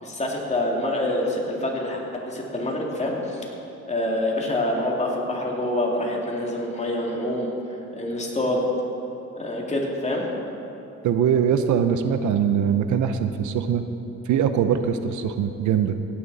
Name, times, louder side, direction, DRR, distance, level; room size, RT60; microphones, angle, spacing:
voice 1, 0.0-3.5 3.9-7.5 7.9-8.7 9.4-10.3, left 1 dB, 20° left, -2 dB, 2.4 m, -26 dB
voice 2, 11.0-13.9 14.3-16.0, right 8 dB, 75° right, 9 dB, 0.7 m, -22 dB
16.5 x 9.3 x 4.1 m, 2.9 s
cardioid pair, 90°, 30 cm